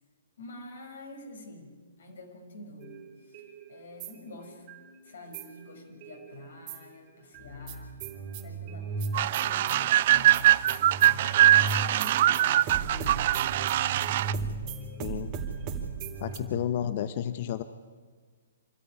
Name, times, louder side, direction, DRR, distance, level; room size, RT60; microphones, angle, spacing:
voice 1, 0.4-3.0 3.3-3.4 3.7-4.7 5.0-8.0 8.4-11.4 11.9-13.3 14.2-15.3 16.3-16.6, left 2 dB, 65° left, 2 dB, 5.6 m, -47 dB
sound 1, 2.8-4.9 5.3-6.9 7.3-16.4, right 4 dB, 35° right, 3.6 m, -37 dB
sound 2, 9.1-14.3, right 13 dB, 50° right, 0.6 m, -22 dB
voice 2, 15.0-15.3 16.2-17.6, left 10 dB, 50° left, 12 dB, 1.0 m, -31 dB
26.5 x 13.5 x 9.9 m, 1.5 s
figure-of-eight pair, 125°, 0 cm